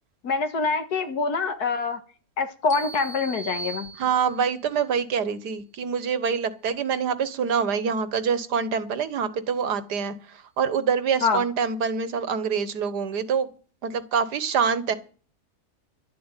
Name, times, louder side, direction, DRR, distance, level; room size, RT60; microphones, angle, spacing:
voice 1, 0.2-2.0 2.4-3.9 11.2-11.4, left 4 dB, 70° left, 8 dB, 2.1 m, -25 dB
sound 1, 2.7-4.6, right 3 dB, 50° left, 3.2 m, -38 dB
voice 2, 4.0-13.5 13.8-15.0, right 6 dB, 80° right, 13 dB, 1.8 m, -25 dB
12.0 x 7.6 x 9.0 m, 0.39 s
omnidirectional pair, 1.7 m